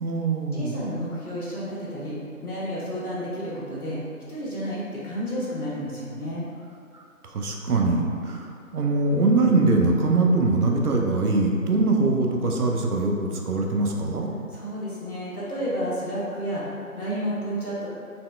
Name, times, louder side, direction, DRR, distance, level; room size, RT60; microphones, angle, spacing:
voice 1, 0.0-0.7 7.2-14.3, right 3 dB, 85° right, 0 dB, 0.6 m, -22 dB
voice 2, 0.5-4.0 4.3-6.4 14.5-17.9, equal, 75° left, -8 dB, 1.2 m, -31 dB
4.0 x 2.2 x 2.2 m, 2.3 s
figure-of-eight pair, 165°, 44 cm